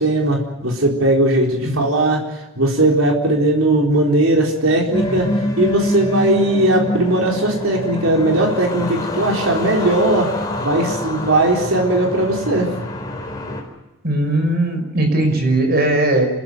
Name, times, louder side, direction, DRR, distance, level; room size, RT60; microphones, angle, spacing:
voice 1, 0.0-2.2 2.6-5.3 5.6-10.3 10.6-12.7, right 1 dB, 85° right, 0 dB, 4.2 m, -18 dB
sound 1, 4.9-13.6, left 1 dB, 20° left, 4.3 m, -25 dB
voice 2, 14.0-16.3, right 1 dB, 50° right, 5 dB, 5.8 m, -18 dB
27.5 x 15.0 x 9.3 m, 1.0 s
head